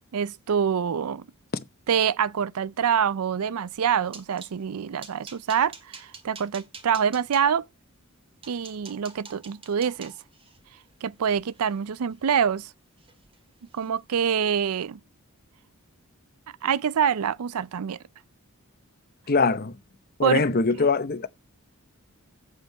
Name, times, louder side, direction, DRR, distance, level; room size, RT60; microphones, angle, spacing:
voice 1, 0.1-1.2 1.9-7.6 8.5-10.1 11.0-12.7 13.7-15.0 16.6-18.0 20.2-20.5, right 7 dB, 85° right, 0.4 m, -25 dB
sound 1, 3.7-4.6 5.0-7.4 8.0-8.1 8.4-12.6 13.0-13.4 13.7-13.9 14.3-14.4, right 4 dB, 25° right, 1.9 m, -47 dB
voice 2, 19.3-19.7 20.2-21.3, left 4 dB, 45° left, 0.8 m, -22 dB
8.3 x 7.5 x 4.6 m
head